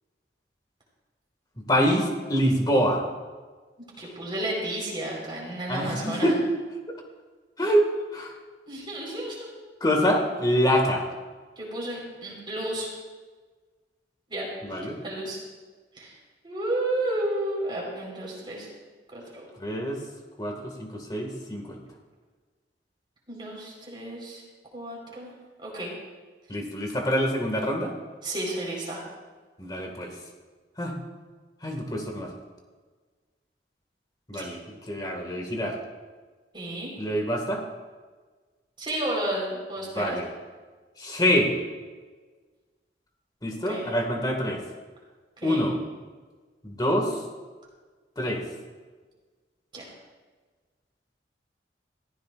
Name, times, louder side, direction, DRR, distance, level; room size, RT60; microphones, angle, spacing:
voice 1, 1.7-3.0 5.7-6.4 7.6-8.3 9.8-11.1 14.6-15.0 19.6-20.0 20.4-21.8 26.5-27.9 29.6-30.1 30.8-31.0 31.6-32.3 34.3-34.6 34.9-35.8 37.0-37.6 39.9-40.3 41.0-41.5 43.4-44.6 45.4-45.8 46.6-47.2 48.2-48.4, equal, 25° left, 2 dB, 2.0 m, -25 dB
voice 2, 4.0-6.3 8.7-9.5 11.6-12.9 14.3-14.5 15.0-15.4 15.9-16.1 16.4-18.7 19.1-19.2 23.3-24.4 24.7-25.3 25.6-25.9 28.2-29.0 34.3-34.4 36.5-36.9 38.8-40.2 43.6-43.8 45.4-45.7 49.7-49.8, right 1 dB, 30° right, -3 dB, 4.5 m, -32 dB
21.0 x 15.0 x 2.5 m, 1.4 s
head